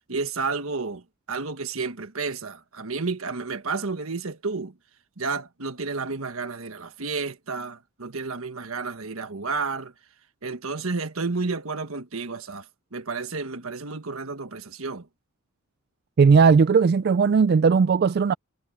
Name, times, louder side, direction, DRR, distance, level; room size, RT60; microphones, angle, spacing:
voice 1, 0.1-4.7 5.2-9.9 10.4-12.6 12.9-15.1, right 4 dB, 80° right, 1.5 m, -31 dB
voice 2, 16.2-18.3, right 5 dB, 50° right, 0.3 m, -17 dB
head